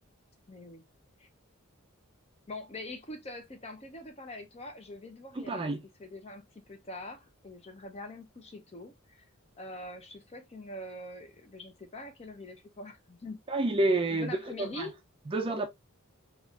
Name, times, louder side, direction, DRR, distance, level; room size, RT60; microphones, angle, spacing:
voice 1, 0.5-0.8 1.2-1.3 2.5-5.7 6.0-9.2 9.6-13.4 14.1-14.9, left 2 dB, 30° left, 0.6 m, -44 dB
voice 2, 5.4-5.8 13.5-14.9 15.3-15.7, right 2 dB, 25° right, 0.4 m, -29 dB
3.5 x 2.4 x 2.3 m
head